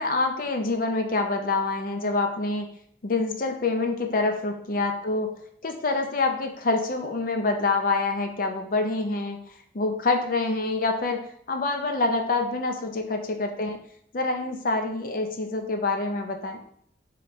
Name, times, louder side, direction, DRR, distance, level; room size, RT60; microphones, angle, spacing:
voice 1, 0.0-2.7 3.0-5.3 5.6-9.4 9.7-13.8 14.1-16.6, left 3 dB, 45° left, 5 dB, 0.5 m, -26 dB
4.7 x 3.1 x 3.0 m, 0.66 s
head